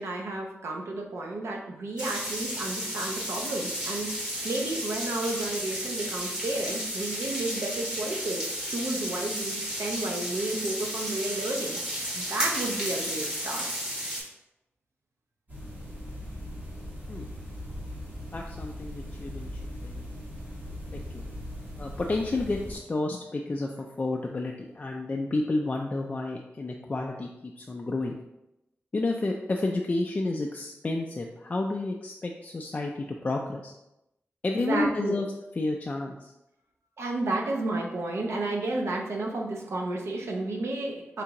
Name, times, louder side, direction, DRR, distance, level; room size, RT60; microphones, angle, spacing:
voice 1, 0.0-13.7 34.6-35.2 37.0-41.2, right 2 dB, 75° right, 0 dB, 0.7 m, -32 dB
sound 1, 2.0-14.2, equal, 15° right, 1.4 m, -33 dB
sound 2, 15.5-22.8, left 1 dB, 40° right, 1.4 m, -39 dB
voice 2, 18.3-20.1 20.9-21.3 21.8-28.2 28.9-33.7 34.4-35.3 35.6-36.3, left 2 dB, 30° left, 0 dB, 0.3 m, -31 dB
3.6 x 3.3 x 2.9 m, 0.89 s
wide cardioid pair, 105°, 5 cm